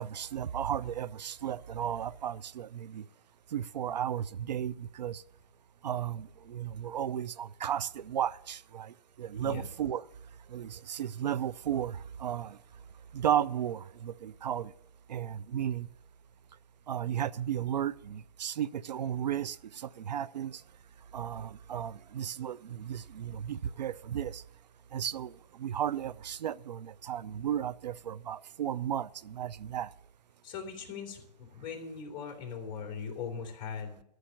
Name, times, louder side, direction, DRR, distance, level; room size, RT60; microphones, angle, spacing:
voice 1, 0.0-3.0 3.5-5.2 5.8-8.9 9.2-10.0 10.5-12.6 13.1-14.7 15.1-15.9 16.9-20.6 21.1-24.4 24.9-25.3 25.6-29.9, right 10 dB, 85° right, 0.6 m, -34 dB
voice 2, 9.3-9.7 30.4-34.0, left 6 dB, 20° left, 2.9 m, -40 dB
13.0 x 6.5 x 9.0 m
hypercardioid pair, 145°, 21 cm